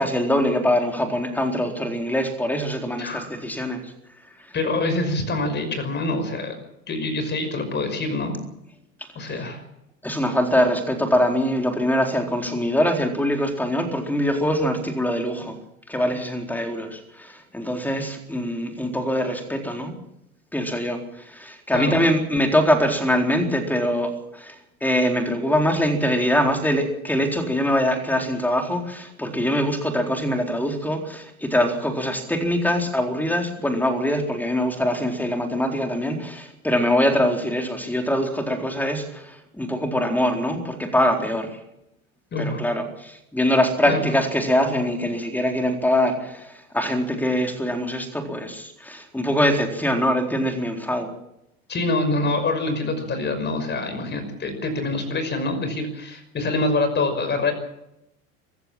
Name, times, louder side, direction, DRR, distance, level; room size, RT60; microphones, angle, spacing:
voice 1, 0.0-3.8 10.0-15.5 15.9-20.0 20.5-24.5 24.8-41.5 42.4-51.1, equal, 5° left, 4 dB, 4.1 m, -23 dB
voice 2, 3.0-3.3 4.5-6.6 6.9-8.4 9.1-9.6 21.7-22.0 42.3-42.6 43.9-44.1 51.7-57.5, left 2 dB, 25° left, 8 dB, 5.8 m, -25 dB
24.5 x 15.5 x 7.5 m, 0.82 s
figure-of-eight pair, 80°, 43 cm